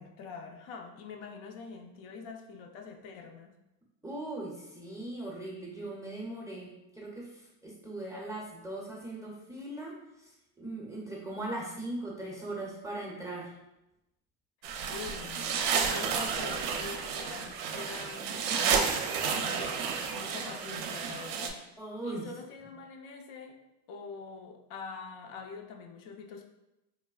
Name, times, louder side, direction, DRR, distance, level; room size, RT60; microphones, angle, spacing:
voice 1, 0.0-3.5 14.9-19.0 19.3-19.8 20.1-21.7 22.0-23.6 23.9-26.4, left 5 dB, 65° left, 4 dB, 0.5 m, -45 dB
voice 2, 4.0-10.3 10.6-13.5 21.8-22.3, right 2 dB, 5° right, -4 dB, 0.4 m, -39 dB
sound 1, 14.6-21.5, right 6 dB, 60° right, 0.5 m, -31 dB
3.2 x 2.1 x 2.3 m, 0.92 s
hypercardioid pair, 80°, 48 cm